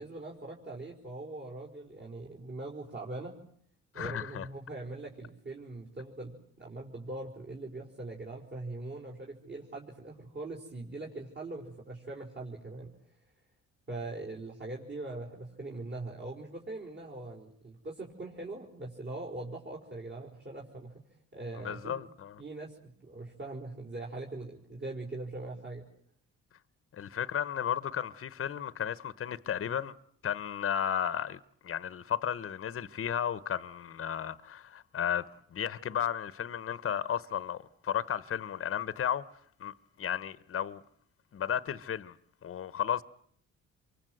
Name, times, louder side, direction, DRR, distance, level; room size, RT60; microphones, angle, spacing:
voice 1, 0.0-3.4 3.9-12.9 13.9-20.9 21.3-22.0 22.4-25.8, right 2 dB, 40° right, 5.2 m, -41 dB
voice 2, 3.9-4.5 21.6-22.4 26.9-29.9 30.2-39.3 39.6-40.8 41.3-42.2 42.4-43.0, left 9 dB, 45° left, 1.1 m, -34 dB
27.5 x 24.0 x 8.0 m
cardioid pair, 90°, 30 cm